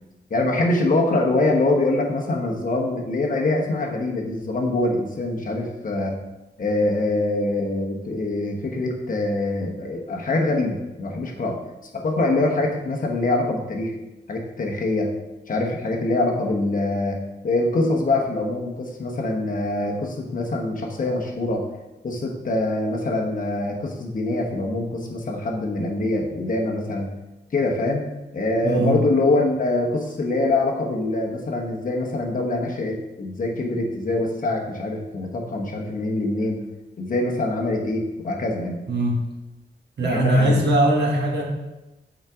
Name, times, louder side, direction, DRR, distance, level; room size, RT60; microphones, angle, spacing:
voice 1, 0.3-6.2 6.6-11.6 12.0-13.9 14.3-15.1 15.5-17.2 17.4-21.6 22.0-27.1 27.5-28.1 28.3-36.6 37.0-38.8 40.0-40.7, left 2 dB, 50° left, 0 dB, 1.1 m, -24 dB
voice 2, 28.6-29.0 38.9-39.3 40.0-41.4, right 1 dB, 70° right, -1 dB, 1.6 m, -20 dB
7.3 x 5.0 x 3.6 m, 1.0 s
wide cardioid pair, 150°, 18 cm